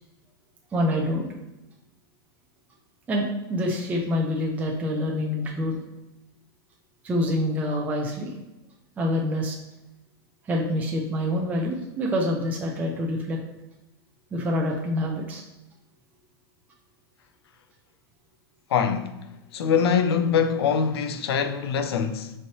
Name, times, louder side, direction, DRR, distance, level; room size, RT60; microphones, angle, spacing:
voice 1, 0.7-1.3 3.1-5.8 7.0-8.3 9.0-9.6 10.4-13.4 14.3-15.4, left 1 dB, 10° right, 0.5 m, -26 dB
voice 2, 18.7-19.2 19.5-22.3, left 7 dB, 80° left, 0.5 m, -23 dB
5.3 x 3.2 x 2.7 m
supercardioid pair, 155°, 13 cm